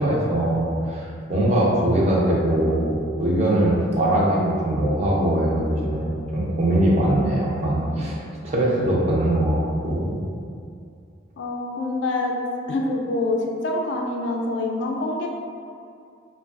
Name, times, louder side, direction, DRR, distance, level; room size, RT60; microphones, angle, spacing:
voice 1, 0.0-8.2 8.4-9.6 9.8-10.2, right 1 dB, 35° right, -4 dB, 0.4 m, -21 dB
voice 2, 11.4-12.3 12.7-15.3, left 2 dB, 60° left, 1 dB, 0.3 m, -25 dB
3.2 x 2.2 x 2.3 m, 2.4 s
head